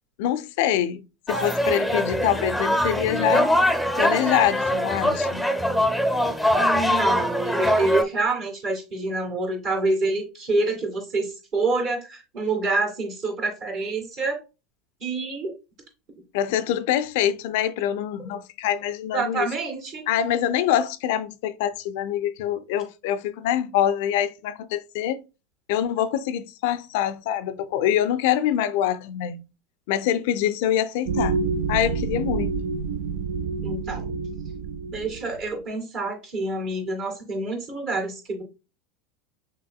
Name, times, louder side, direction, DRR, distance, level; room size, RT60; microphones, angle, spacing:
voice 1, 0.2-1.0 1.3-3.5 4.0-5.5 16.3-19.5 20.1-25.2 25.7-29.4 29.9-31.4 31.7-32.6, left 10 dB, 65° left, 0.4 m, -25 dB
sound 1, 1.3-8.0, equal, ahead, 0.7 m, -22 dB
voice 2, 6.6-14.4 15.0-15.5 19.1-20.1 33.6-34.1 34.9-38.4, right 3 dB, 50° right, 2.4 m, -27 dB
sound 2, 31.1-35.6, right 5 dB, 70° right, 0.4 m, -28 dB
5.9 x 3.4 x 2.2 m
hypercardioid pair, 80°, 0 cm